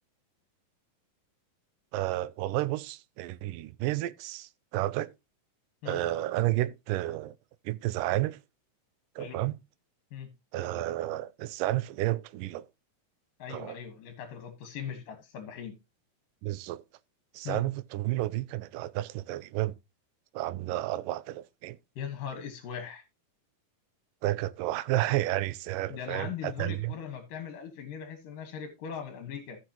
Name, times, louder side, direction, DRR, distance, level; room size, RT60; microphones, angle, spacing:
voice 1, 1.9-5.1 5.9-7.3 7.7-8.4 9.2-9.6 10.5-12.7 13.5-13.8 16.4-16.8 17.3-19.8 20.3-21.8 24.2-26.9, right 16 dB, 80° right, 2.2 m, -31 dB
voice 2, 13.4-15.7 17.4-17.6 22.0-23.0 25.9-29.6, left 8 dB, 75° left, 3.1 m, -39 dB
15.5 x 6.0 x 2.9 m
omnidirectional pair, 4.0 m